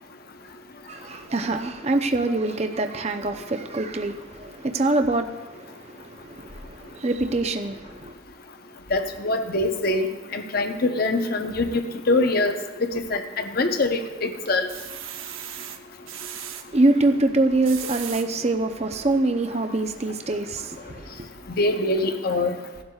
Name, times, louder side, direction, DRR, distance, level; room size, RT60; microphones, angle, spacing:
voice 1, 0.9-8.1 16.7-21.3, right 2 dB, 30° right, 0.7 m, -25 dB
voice 2, 8.9-10.1 10.3-12.5 12.8-14.7 21.6-22.5, left 2 dB, 50° left, 0.8 m, -24 dB
sound 1, 13.4-14.0 14.5-16.6 17.4-18.3 18.9-19.0 19.3-19.4, right 10 dB, 80° right, 0.9 m, -37 dB
17.5 x 12.0 x 2.4 m
head